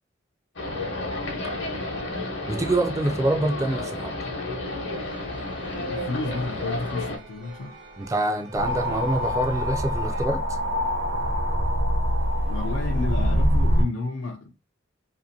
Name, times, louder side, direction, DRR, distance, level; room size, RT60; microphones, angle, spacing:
sound 1, 0.6-7.2, left 2 dB, 65° left, 0.9 m, -31 dB
voice 1, 2.5-4.1 8.0-10.6, right 2 dB, 15° right, 0.3 m, -26 dB
sound 2, 4.9-10.3, right 2 dB, 85° right, 1.0 m, -45 dB
voice 2, 5.8-7.8 12.5-14.5, left 3 dB, 80° left, 0.5 m, -31 dB
sound 3, 8.5-13.9, equal, 60° right, 0.7 m, -24 dB
2.7 x 2.5 x 2.6 m
head